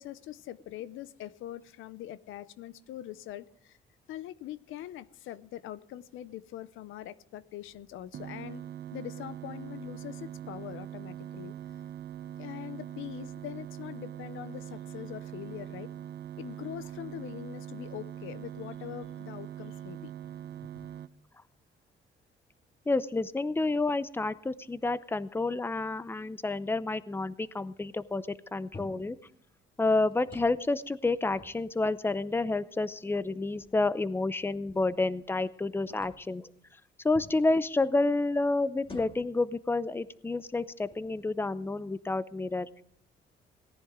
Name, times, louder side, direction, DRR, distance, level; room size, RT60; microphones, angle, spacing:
voice 1, 0.0-3.8 4.1-8.6 8.9-11.5 12.4-15.9 16.4-20.1 20.7-20.9, left 13 dB, 85° left, 0.7 m, -43 dB
sound 1, 8.1-21.1, right 10 dB, 55° right, 0.7 m, -42 dB
voice 2, 22.9-28.2 28.5-29.2 29.8-36.5 37.0-42.8, left 2 dB, 10° left, 0.6 m, -29 dB
sound 2, 28.7-29.1 30.1-30.7 31.1-32.2 32.9-33.0 33.5-35.5 35.9-36.4 37.1-37.4 38.8-39.4 40.1-40.3 40.8-41.3, left 3 dB, 25° left, 2.0 m, -50 dB
18.0 x 10.5 x 3.7 m
cardioid pair, 90°, 20 cm